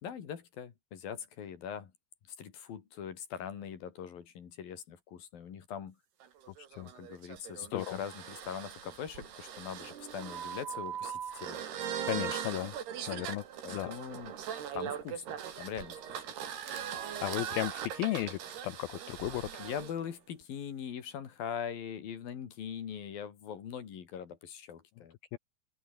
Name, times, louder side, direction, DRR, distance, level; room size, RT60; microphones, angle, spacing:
voice 1, 0.0-1.9 2.4-6.0 6.8-11.6 13.6-14.3 14.7-16.2 19.6-25.1, left 8 dB, 55° left, 4.1 m, -42 dB
sound 1, 6.2-19.9, right 9 dB, 65° right, 4.7 m, -40 dB
voice 2, 12.1-12.7 13.1-13.4 13.7-14.0 17.2-19.6 25.3-25.4, left 16 dB, 80° left, 2.2 m, -35 dB
omnidirectional pair, 5.3 m